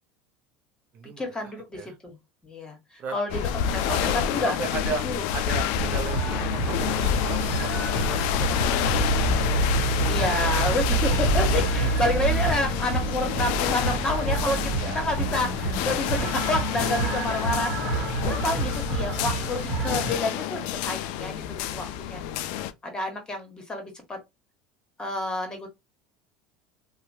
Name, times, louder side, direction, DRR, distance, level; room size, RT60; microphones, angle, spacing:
voice 1, 1.2-2.2 2.4-5.2 10.1-22.2 22.8-24.2 25.0-25.7, left 1 dB, 20° left, 1.3 m, -29 dB
voice 2, 3.0-3.5 3.8-4.1 4.4-7.7 8.0-9.6 14.7-15.0, right 5 dB, 45° right, 0.6 m, -36 dB
sound 1, 3.3-22.7, left 9 dB, 65° left, 0.3 m, -28 dB
sound 2, 5.8-20.2, right 4 dB, 60° right, 1.0 m, -28 dB
2.8 x 2.2 x 2.7 m
hypercardioid pair, 85°, 4 cm